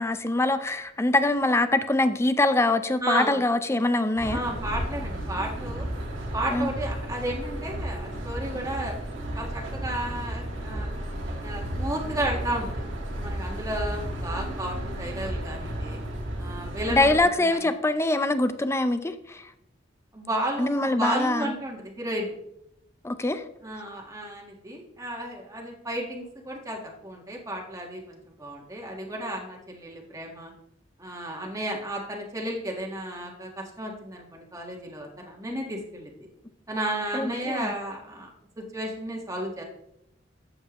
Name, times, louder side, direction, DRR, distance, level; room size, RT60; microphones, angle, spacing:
voice 1, 0.0-4.4 6.5-6.7 16.9-19.5 20.6-21.5 23.0-23.4 37.1-37.7, left 2 dB, 15° left, 10 dB, 0.5 m, -24 dB
voice 2, 3.0-3.4 4.3-5.9 6.3-8.9 9.3-11.0 11.4-12.7 13.1-16.0 16.4-17.2 17.5-17.6 20.1-22.4 23.6-30.5 31.0-36.1 36.7-38.3 38.6-39.6, right 1 dB, 15° right, -1 dB, 1.5 m, -33 dB
sound 1, 4.2-17.2, right 1 dB, 80° right, 1.8 m, -33 dB
12.5 x 7.8 x 3.0 m, 0.79 s
head